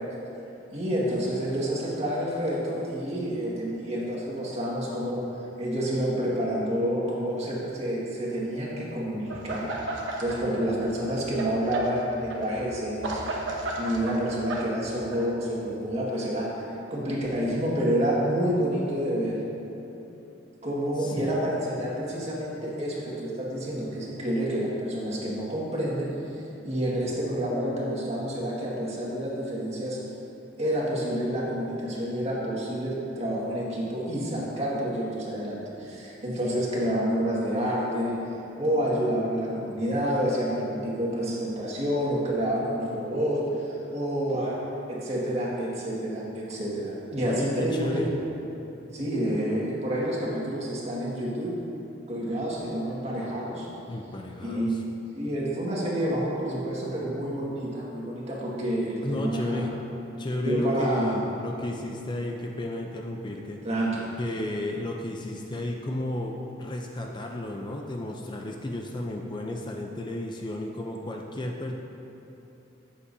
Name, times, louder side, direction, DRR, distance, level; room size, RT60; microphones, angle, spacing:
voice 1, 0.7-5.2 5.6-9.8 10.2-13.5 13.8-16.6 16.9-19.4 20.6-30.0 30.6-38.2 38.6-44.6 44.9-47.9 48.9-51.5 52.1-53.7 54.4-54.8 55.1-59.6 60.4-61.3 63.6-64.1, equal, 35° right, -5 dB, 1.9 m, -28 dB
sound 1, 9.3-10.4 10.7-15.3, right 2 dB, 85° right, 1.1 m, -34 dB
voice 2, 21.0-21.4 47.2-48.1 53.9-54.8 59.0-59.8 60.2-63.6 64.2-71.7, left 1 dB, 25° left, 1 dB, 0.5 m, -33 dB
13.5 x 8.3 x 2.7 m, 3.0 s
head